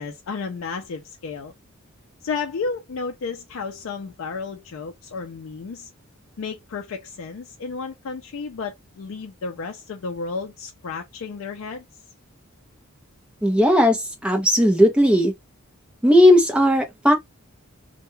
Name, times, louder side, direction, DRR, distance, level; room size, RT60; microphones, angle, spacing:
voice 1, 0.0-1.5 2.2-5.9 6.4-11.8, left 4 dB, 65° left, 0.4 m, -32 dB
voice 2, 13.4-15.3 16.0-17.1, equal, 5° right, 0.5 m, -16 dB
2.2 x 2.1 x 3.0 m
head